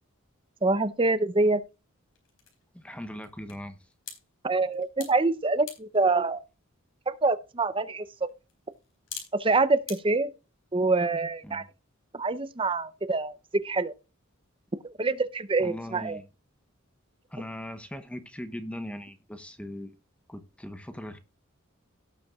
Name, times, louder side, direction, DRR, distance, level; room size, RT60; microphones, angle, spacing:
voice 1, 0.6-1.6 4.4-6.4 7.1-8.3 9.3-10.3 10.7-11.6 12.1-13.9 15.0-16.2, right 3 dB, 25° right, 0.6 m, -25 dB
sound 1, 1.3-10.0, left 7 dB, 70° left, 4.1 m, -49 dB
voice 2, 2.7-3.8 11.4-11.6 15.6-16.2 17.3-19.9 20.3-21.2, equal, 5° left, 0.9 m, -39 dB
17.5 x 6.9 x 2.4 m
head